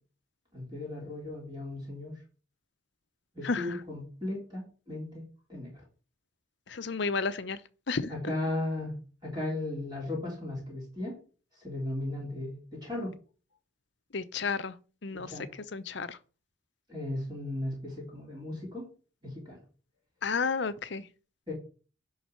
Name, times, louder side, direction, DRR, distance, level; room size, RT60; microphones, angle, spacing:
voice 1, 0.5-2.1 3.3-5.2 5.5-5.7 8.1-9.0 9.2-11.2 11.5-13.1 15.1-15.5 16.9-18.9 19.2-19.6 21.5-21.6, left 1 dB, 20° right, 3.8 m, -36 dB
voice 2, 6.7-7.6 7.9-8.1 14.1-14.7 15.0-15.3 15.7-16.2 20.2-21.0, left 4 dB, 55° left, 0.7 m, -31 dB
10.5 x 4.0 x 6.4 m
head